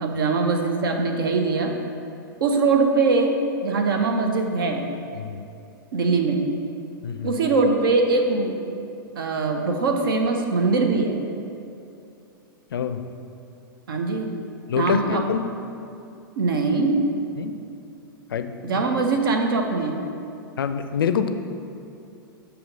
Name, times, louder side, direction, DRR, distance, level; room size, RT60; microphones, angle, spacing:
voice 1, 0.0-1.8 2.4-3.4 3.6-4.8 5.9-6.4 7.2-8.6 9.2-11.2 13.9-14.3 14.8-15.2 16.4-17.0 18.6-20.0, right 3 dB, 70° right, 4 dB, 0.8 m, -22 dB
voice 2, 5.1-5.4 7.0-7.4 12.7-13.0 14.7-15.5 17.4-17.6 18.3-18.8 20.6-21.3, left 7 dB, 75° left, 9 dB, 0.4 m, -26 dB
7.6 x 2.8 x 5.3 m, 2.6 s
hypercardioid pair, 105°, 12 cm